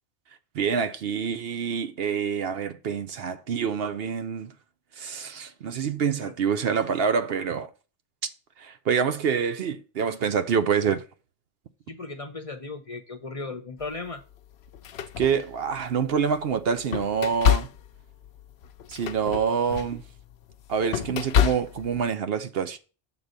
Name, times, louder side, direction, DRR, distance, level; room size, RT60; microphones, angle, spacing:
voice 1, 0.5-4.5 5.0-7.7 8.6-11.1 15.2-17.7 18.9-20.0 20.7-22.8, right 6 dB, 65° right, 0.8 m, -26 dB
voice 2, 11.9-14.2, left 3 dB, 35° left, 0.7 m, -36 dB
sound 1, 13.8-14.0 14.6-16.0 16.5-22.0, left 9 dB, 70° left, 0.8 m, -28 dB
6.9 x 4.1 x 6.5 m
omnidirectional pair, 1.2 m